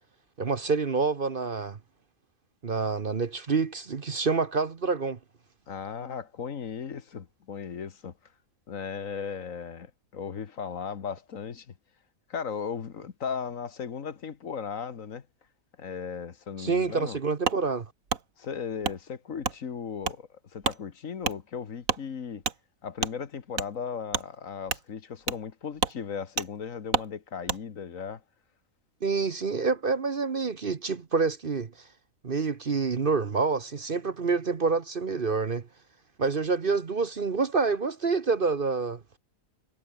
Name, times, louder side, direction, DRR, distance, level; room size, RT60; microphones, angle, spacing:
voice 1, 0.4-1.8 2.6-5.2 16.6-17.9 29.0-31.7 32.2-35.7 36.2-39.0, right 4 dB, 40° right, 1.1 m, -27 dB
voice 2, 5.7-8.1 8.7-11.7 12.3-15.3 15.8-17.2 18.4-22.4 22.8-28.2, left 6 dB, 65° left, 1.8 m, -36 dB
Wood, 17.4-17.6 18.1-18.2 18.8-19.0 19.4-19.6 20.0-20.2 20.6-20.8 21.2-21.4 21.8-22.0 22.4-22.6 23.0-23.1 23.5-23.7 24.1-24.3 24.7-24.8 25.3-25.4 25.8-26.0 26.4-26.5 26.9-27.1 27.5-27.6, right 6 dB, 70° right, 2.1 m, -29 dB
omnidirectional pair, 1.5 m